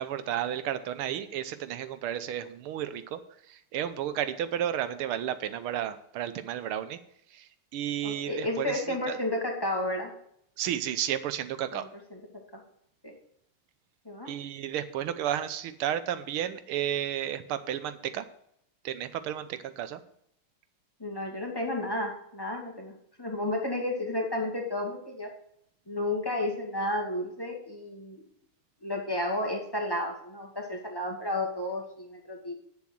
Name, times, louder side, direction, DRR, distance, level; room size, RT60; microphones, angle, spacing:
voice 1, 0.0-3.2 3.5-7.0 7.3-9.2 10.6-11.9 14.3-18.2 18.8-20.0, right 10 dB, 80° right, 12 dB, 1.7 m, -32 dB
voice 2, 8.0-10.1 11.7-12.2 12.5-12.6 14.1-14.3 21.0-22.9 23.2-25.3 25.9-28.2 28.8-32.5, left 1 dB, 10° left, 0 dB, 1.9 m, -32 dB
9.7 x 7.2 x 6.2 m, 0.72 s
omnidirectional pair, 2.4 m